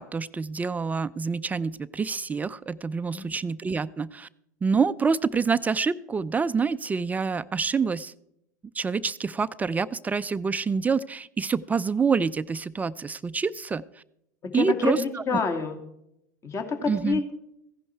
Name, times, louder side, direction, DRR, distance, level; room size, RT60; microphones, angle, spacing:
voice 1, 0.0-4.3 4.6-8.1 8.7-13.8 14.5-15.4 16.9-17.2, right 5 dB, 15° right, 15 dB, 0.4 m, -27 dB
voice 2, 14.4-15.8 16.4-17.3, left 5 dB, 30° left, 5 dB, 2.3 m, -28 dB
15.5 x 11.0 x 4.5 m, 0.78 s
hypercardioid pair, 90°, 9 cm